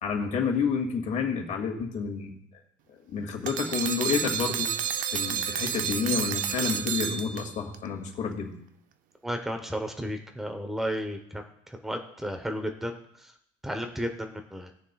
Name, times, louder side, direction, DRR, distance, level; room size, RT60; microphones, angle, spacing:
voice 1, 0.0-2.3 3.1-4.7 5.1-8.5, left 6 dB, 50° left, 1 dB, 2.3 m, -29 dB
sound 1, 3.5-7.8, right 8 dB, 55° right, 0.6 m, -30 dB
voice 2, 9.2-13.3 13.6-14.7, equal, ahead, 5 dB, 0.9 m, -33 dB
20.0 x 6.8 x 2.4 m, 0.73 s
cardioid pair, 130°, 17 cm